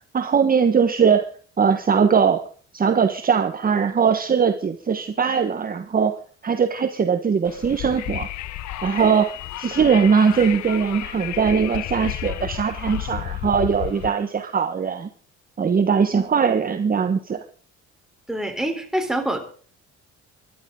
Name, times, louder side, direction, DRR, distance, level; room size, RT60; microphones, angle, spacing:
voice 1, 0.1-1.2 1.6-2.4 2.7-8.3 8.8-15.1 15.6-17.4, right 6 dB, 30° right, 7 dB, 1.2 m, -20 dB
Wind, 7.4-14.1, left 14 dB, 70° left, 0.9 m, -32 dB
voice 2, 18.3-19.4, right 1 dB, ahead, 4 dB, 3.6 m, -26 dB
26.0 x 12.0 x 3.8 m, 0.42 s
cardioid pair, 120°, 30 cm